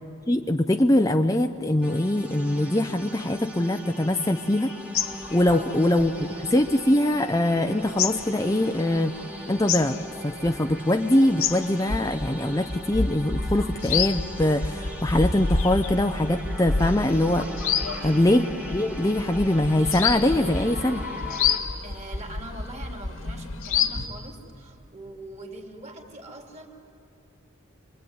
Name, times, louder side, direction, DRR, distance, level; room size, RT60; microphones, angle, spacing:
voice 1, 0.3-4.7 5.3-6.1 6.4-9.1 9.5-10.0 10.2-17.5 18.0-21.0, left 1 dB, 15° left, 6 dB, 0.6 m, -23 dB
sound 1, 1.8-21.6, equal, 5° right, 1.6 m, -40 dB
sound 2, 4.9-7.2 7.6-11.0 11.2-24.1, left 5 dB, 75° left, 1.7 m, -29 dB
voice 2, 5.5-5.9 21.8-26.7, right 1 dB, 30° right, 3 dB, 2.7 m, -42 dB
27.0 x 22.5 x 9.5 m, 2.8 s
head